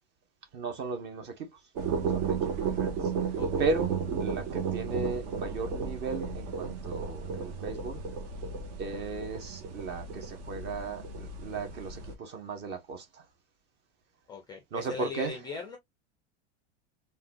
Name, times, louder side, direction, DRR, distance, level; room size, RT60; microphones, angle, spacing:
voice 1, 0.5-1.6 2.1-8.0 8.8-13.2 14.7-15.5, right 4 dB, 30° right, 0.8 m, -36 dB
sound 1, 1.8-12.1, right 5 dB, 55° right, 0.9 m, -34 dB
voice 2, 3.4-3.7 14.3-15.8, left 5 dB, 15° left, 0.4 m, -39 dB
3.7 x 2.2 x 2.5 m
supercardioid pair, 160°, 34 cm